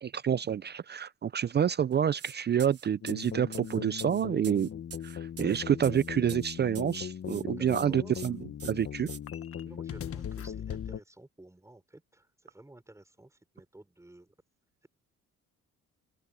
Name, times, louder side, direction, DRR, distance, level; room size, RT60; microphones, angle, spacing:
voice 1, 0.0-4.7 5.0-8.4 8.6-9.1, right 8 dB, 35° right, 0.4 m, -28 dB
sound 1, 2.2-2.3 2.6-7.0 7.3-7.9 8.1-8.3 8.6-9.2, right 8 dB, 50° right, 2.9 m, -46 dB
sound 2, 3.0-11.0, left 8 dB, 50° left, 1.3 m, -39 dB
voice 2, 7.3-8.1 9.6-14.4, right 1 dB, 10° right, 6.0 m, -52 dB
cardioid pair, 90°, 30 cm